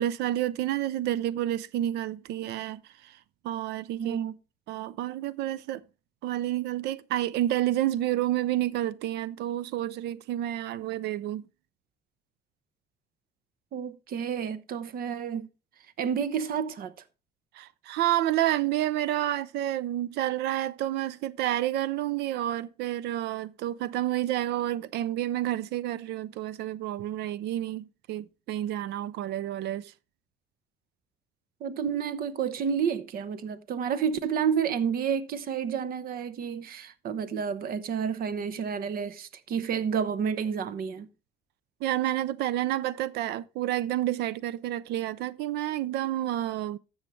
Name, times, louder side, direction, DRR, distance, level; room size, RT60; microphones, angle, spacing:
voice 1, 0.0-3.2 3.4-4.2 4.7-5.8 6.2-11.4 17.5-29.9 41.8-46.8, right 13 dB, 80° right, 0.5 m, -29 dB
voice 2, 4.0-4.3 13.7-15.5 16.0-16.9 31.6-41.1, right 7 dB, 60° right, 0.9 m, -30 dB
12.0 x 7.2 x 3.1 m
cardioid pair, 110°, 17 cm